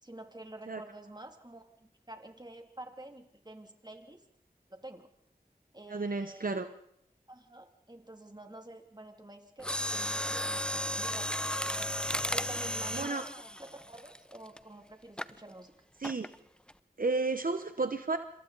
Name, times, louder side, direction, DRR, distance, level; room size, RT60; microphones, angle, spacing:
voice 1, 0.0-4.2 4.7-5.1 5.7-6.6 7.3-11.5 12.3-13.3 13.6-15.7, right 1 dB, 25° right, 5 dB, 2.7 m, -48 dB
voice 2, 5.9-6.7 12.9-13.2 16.0-16.3 17.0-18.2, right 3 dB, 65° right, 8 dB, 1.0 m, -32 dB
Mechanisms, 9.6-14.6 15.2-15.4 16.0-16.4 16.7-16.8, equal, 5° left, 0.8 m, -34 dB
27.5 x 26.5 x 4.1 m, 0.72 s
wide cardioid pair, 55°, 16 cm